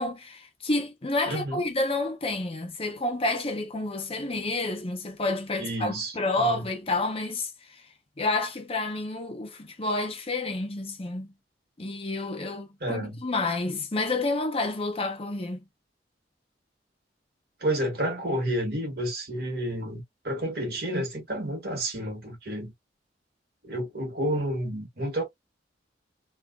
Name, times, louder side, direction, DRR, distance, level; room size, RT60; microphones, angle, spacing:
voice 1, 0.0-7.8 8.2-11.3 11.8-15.6, left 2 dB, 35° left, 0.8 m, -29 dB
voice 2, 1.3-1.6 5.6-6.7 12.8-13.2 17.6-22.7 23.6-25.2, right 1 dB, 60° right, 1.7 m, -30 dB
3.7 x 2.4 x 2.3 m
head